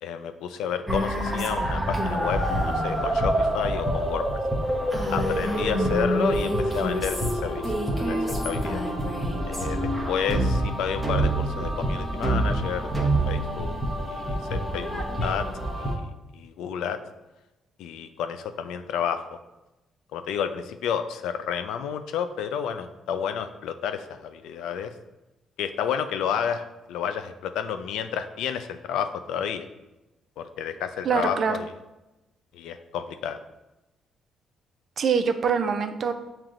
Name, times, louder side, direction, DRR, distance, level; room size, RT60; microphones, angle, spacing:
voice 1, 0.0-4.4 5.1-8.8 9.5-9.8 10.1-13.8 14.1-15.5 15.8-17.0 17.8-19.3 20.1-24.9 25.6-29.7 30.4-31.7 32.5-33.4, left 8 dB, 90° left, 10 dB, 0.3 m, -31 dB
sound 1, 0.9-16.0, right 1 dB, 5° left, 0.9 m, -26 dB
voice 2, 31.0-31.6 35.0-36.1, right 6 dB, 55° right, 8 dB, 0.4 m, -24 dB
7.2 x 2.9 x 2.5 m, 1.0 s
cardioid pair, 90°, 0 cm